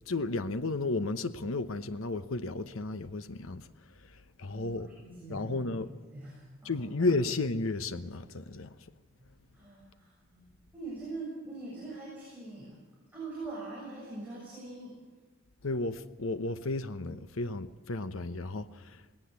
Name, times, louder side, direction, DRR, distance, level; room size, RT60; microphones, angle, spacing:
voice 1, 0.1-4.9 5.3-5.9 6.6-8.9 15.6-19.0, left 2 dB, 75° left, 1.0 m, -33 dB
voice 2, 5.0-5.8 6.1-7.1 9.2-10.4 10.7-12.8 13.1-15.0, right 3 dB, 10° right, 7.2 m, -43 dB
19.5 x 18.0 x 8.3 m
head